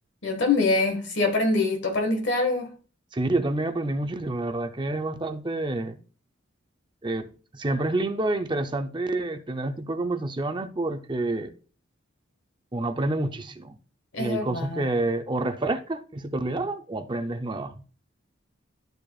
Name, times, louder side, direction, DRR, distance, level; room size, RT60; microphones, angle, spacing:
voice 1, 0.2-2.7 14.1-14.8, left 3 dB, 60° left, 1.6 m, -24 dB
voice 2, 3.1-5.9 7.0-7.3 7.5-11.5 12.7-13.8 14.2-17.7, right 2 dB, 25° right, 0.6 m, -28 dB
12.0 x 4.9 x 2.4 m
head